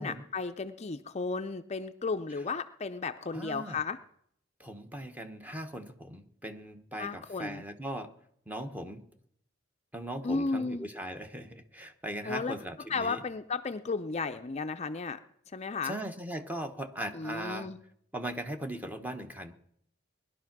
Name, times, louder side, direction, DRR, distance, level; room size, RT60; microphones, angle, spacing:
voice 1, 0.0-4.0 7.0-7.6 10.2-10.9 12.3-12.6 12.9-15.2 15.5-16.0 17.1-17.8, left 4 dB, 35° left, 8 dB, 0.5 m, -34 dB
voice 2, 3.3-3.8 4.6-8.1 8.5-9.0 9.9-13.2 15.8-17.7 18.1-19.5, right 1 dB, 10° right, 7 dB, 1.1 m, -39 dB
19.5 x 11.5 x 6.0 m, 0.71 s
head